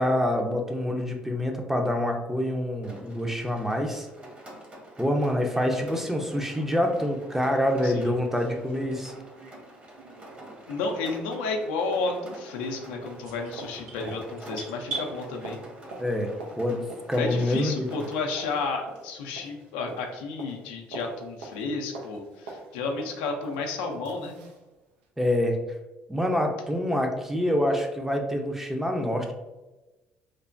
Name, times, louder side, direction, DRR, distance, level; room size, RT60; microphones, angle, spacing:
voice 1, 0.0-4.1 5.0-9.1 14.0-14.1 16.0-16.3 16.6-16.8 17.1-17.9 25.2-25.6 26.1-29.3, left 1 dB, 10° right, 3 dB, 0.5 m, -26 dB
Rain, 2.8-18.7, right 1 dB, 30° right, 1.0 m, -47 dB
voice 2, 7.8-8.1 10.7-15.6 17.2-24.4, left 3 dB, 85° left, 2 dB, 0.4 m, -32 dB
sound 1, 8.2-12.8 13.0-24.6 25.0-25.1, right 2 dB, 90° right, 0.4 m, -46 dB
sound 2, 13.2-15.1, right 4 dB, 65° right, 1.4 m, -37 dB
3.2 x 2.1 x 2.5 m, 1.1 s
hypercardioid pair, 60°, 5 cm